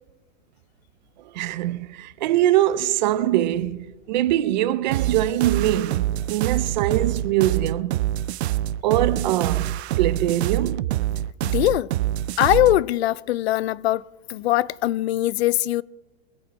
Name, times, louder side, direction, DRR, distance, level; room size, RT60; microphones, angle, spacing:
voice 1, 1.3-8.0 8.8-9.7 10.0-10.9, right 13 dB, 45° right, 0.6 m, -23 dB
sound 1, 4.9-12.8, right 13 dB, 85° right, 0.5 m, -25 dB
voice 2, 11.4-11.9 12.4-15.8, left 15 dB, 80° left, 0.5 m, -21 dB
24.0 x 8.7 x 4.2 m
supercardioid pair, 170°, 32 cm